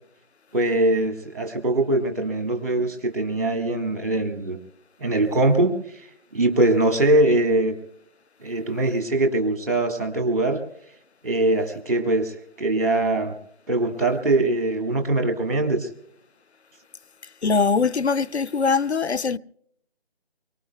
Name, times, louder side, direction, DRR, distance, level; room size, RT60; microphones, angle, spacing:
voice 1, 0.5-4.6 5.0-5.8 6.3-7.8 8.4-10.6 11.2-13.3 13.7-15.9, right 2 dB, 55° right, 1.7 m, -22 dB
voice 2, 17.4-19.4, left 4 dB, 90° left, 0.6 m, -22 dB
25.5 x 24.0 x 2.2 m
figure-of-eight pair, 160°, 32 cm